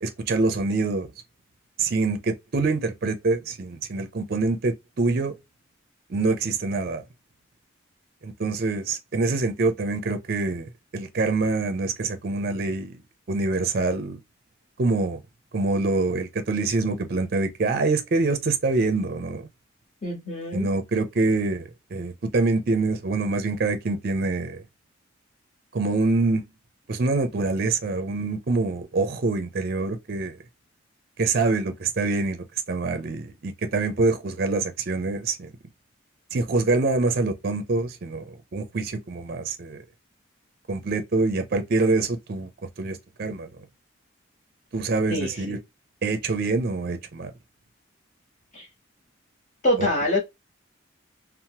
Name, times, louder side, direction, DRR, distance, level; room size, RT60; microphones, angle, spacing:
voice 1, 0.0-1.1 1.8-5.3 6.1-7.0 8.2-13.0 13.3-14.2 14.8-15.2 15.5-19.5 20.5-24.6 25.7-26.4 26.9-30.4 31.2-35.5 36.3-39.8 40.7-42.5 42.8-43.5 44.7-45.6 46.0-47.3 49.8-49.9, right 3 dB, 50° right, 0.4 m, -25 dB
voice 2, 20.0-20.7 45.1-45.6 48.5-48.7 49.6-50.2, left 1 dB, 35° left, 1.0 m, -25 dB
2.8 x 2.0 x 2.7 m
head